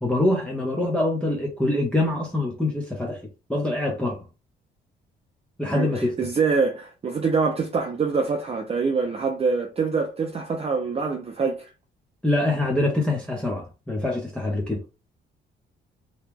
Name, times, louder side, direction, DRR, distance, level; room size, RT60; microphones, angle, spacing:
voice 1, 0.0-3.2 3.5-4.2 5.6-6.2 12.2-14.8, left 2 dB, 5° left, 0.8 m, -24 dB
voice 2, 5.7-11.7, right 4 dB, 30° right, 0.6 m, -25 dB
2.9 x 2.3 x 3.4 m
cardioid pair, 90°, 20 cm